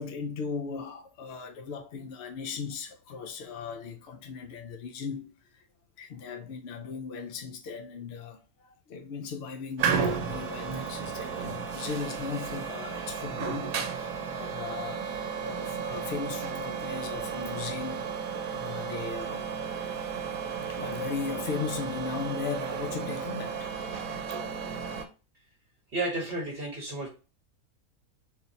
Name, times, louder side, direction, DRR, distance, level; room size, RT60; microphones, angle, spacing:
voice 1, 0.0-5.6 6.0-15.1 15.4-19.5 20.7-23.7, left 5 dB, 65° left, 0.6 m, -37 dB
sound 1, 9.8-25.1, right 6 dB, 70° right, 1.1 m, -33 dB
voice 2, 25.9-27.1, right 2 dB, 45° right, 1.0 m, -32 dB
3.7 x 2.9 x 3.9 m
omnidirectional pair, 1.6 m